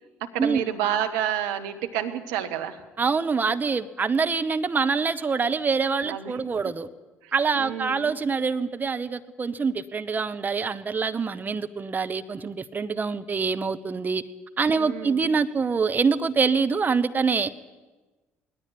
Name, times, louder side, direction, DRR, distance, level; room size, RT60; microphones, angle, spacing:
voice 1, 0.2-2.8 6.0-6.4 6.6-6.7 7.2-8.1 14.7-15.3, right 10 dB, 65° right, 7 dB, 1.5 m, -30 dB
voice 2, 3.0-6.9 7.3-14.2 14.6-17.5, right 5 dB, 30° right, 11 dB, 1.1 m, -25 dB
20.0 x 17.5 x 9.9 m, 1.2 s
figure-of-eight pair, 50°, 6 cm